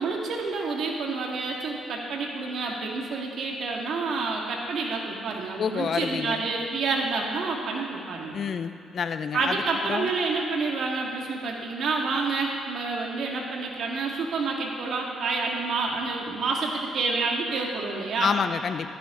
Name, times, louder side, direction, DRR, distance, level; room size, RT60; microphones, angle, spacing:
voice 1, 0.0-8.4 9.3-18.3, right 3 dB, 65° right, -1 dB, 2.2 m, -28 dB
voice 2, 5.6-6.4 8.3-9.6 9.9-10.1 18.2-18.9, left 6 dB, 55° left, 10 dB, 0.7 m, -28 dB
14.5 x 13.0 x 3.9 m, 2.4 s
cardioid pair, 90°, 0 cm